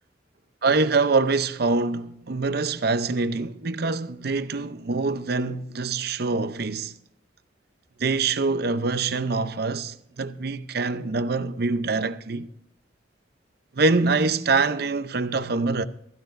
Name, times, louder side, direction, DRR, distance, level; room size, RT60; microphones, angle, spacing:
voice 1, 0.6-6.9 8.0-12.5 13.7-15.8, right 3 dB, 60° right, 0.6 m, -24 dB
15.5 x 14.5 x 2.6 m
head